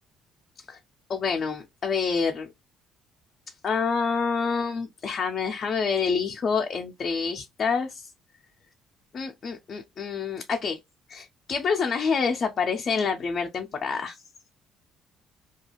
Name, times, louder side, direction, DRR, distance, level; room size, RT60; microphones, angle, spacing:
voice 1, 1.1-2.5 3.6-8.1 9.1-10.8 11.1-14.2, left 5 dB, 35° left, 0.3 m, -27 dB
2.4 x 2.3 x 2.9 m
cardioid pair, 155°, 0 cm